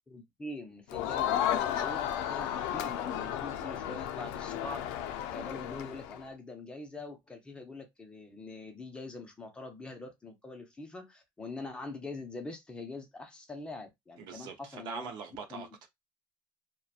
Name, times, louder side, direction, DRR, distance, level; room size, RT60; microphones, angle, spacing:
voice 1, 0.1-15.1 15.5-15.7, left 2 dB, 10° left, 0.5 m, -44 dB
Crowd, 0.9-6.2, left 10 dB, 75° left, 0.4 m, -33 dB
voice 2, 14.2-15.9, right 5 dB, 50° right, 0.5 m, -42 dB
2.7 x 2.1 x 2.3 m
cardioid pair, 170°, 10 cm